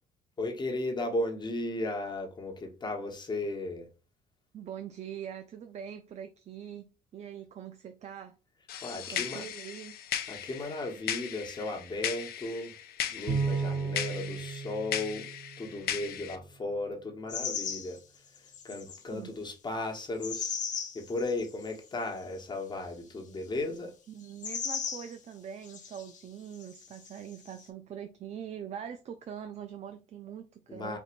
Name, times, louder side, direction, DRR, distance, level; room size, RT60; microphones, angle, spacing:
voice 1, 0.4-3.9 8.8-9.5 10.3-12.8 13.1-15.3 15.6-18.0 18.4-20.6 20.9-23.9 30.7-31.0, left 2 dB, 25° left, 1.2 m, -35 dB
voice 2, 4.5-8.4 9.1-10.0 19.1-19.3 24.1-31.0, right 9 dB, 40° right, 0.5 m, -43 dB
sound 1, 8.7-16.4, left 9 dB, 65° left, 0.6 m, -37 dB
Bowed string instrument, 13.3-15.9, right 4 dB, 55° right, 1.0 m, -33 dB
sound 2, 17.3-18.0 18.4-19.0 20.2-21.7 24.2-25.1 25.6-26.2 26.5-27.7, left 6 dB, 45° left, 0.9 m, -36 dB
4.5 x 2.6 x 2.5 m
cardioid pair, 110°, 17 cm